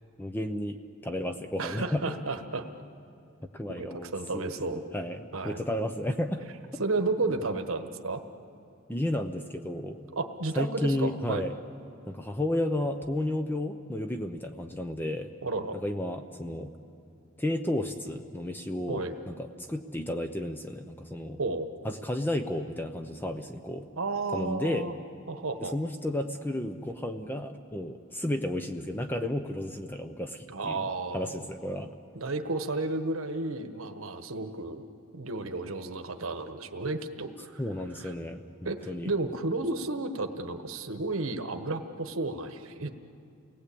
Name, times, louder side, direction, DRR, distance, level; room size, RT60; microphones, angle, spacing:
voice 1, 0.2-2.2 3.5-6.4 8.9-10.0 10.6-11.5 12.1-15.3 15.8-16.7 17.4-21.4 21.8-23.9 24.3-24.9 25.6-30.8 31.1-31.9 37.6-38.4 38.9-39.1, left 1 dB, 10° left, 6 dB, 0.7 m, -32 dB
voice 2, 1.6-2.7 3.7-4.8 5.3-5.6 6.8-8.2 10.1-11.5 15.4-15.8 18.9-19.1 21.4-21.7 24.0-24.9 25.3-25.7 30.5-31.3 32.1-34.8 35.1-37.6 38.0-38.1 38.6-42.9, right 3 dB, 75° right, 7 dB, 1.2 m, -32 dB
29.0 x 19.0 x 8.5 m, 2.5 s
head